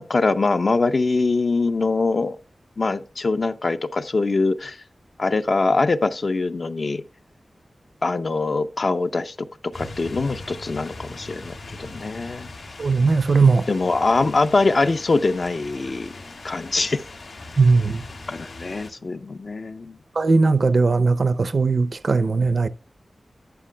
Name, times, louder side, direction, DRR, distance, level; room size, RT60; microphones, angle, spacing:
voice 1, 0.0-2.4 2.8-4.8 5.2-7.0 8.0-9.5 9.7-12.5 13.7-16.1 16.4-17.0 18.3-20.0, left 3 dB, 55° left, 0.6 m, -23 dB
sound 1, 9.7-18.9, left 2 dB, 90° left, 2.4 m, -40 dB
voice 2, 12.8-13.7 17.6-18.0 20.2-22.7, right 4 dB, 60° right, 0.5 m, -18 dB
11.5 x 8.3 x 2.2 m
wide cardioid pair, 100°, 0 cm